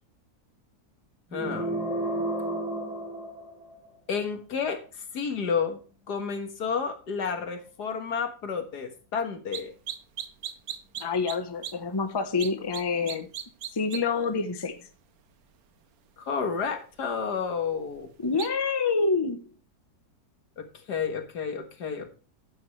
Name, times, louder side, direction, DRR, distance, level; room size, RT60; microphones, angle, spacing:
voice 1, 1.3-1.8 4.1-5.8 6.1-9.7 16.2-18.1 20.6-22.1, left 6 dB, 85° left, 2.1 m, -31 dB
sound 1, 1.3-4.0, right 1 dB, ahead, 3.5 m, -32 dB
sound 2, 9.5-9.6 9.9-11.4 11.6-11.7 12.4-12.8 13.1-14.0 18.4-18.5, right 9 dB, 70° right, 1.3 m, -35 dB
voice 2, 11.0-13.3 13.7-14.9 18.2-19.4, left 4 dB, 20° left, 0.7 m, -27 dB
10.5 x 9.5 x 3.2 m
omnidirectional pair, 1.7 m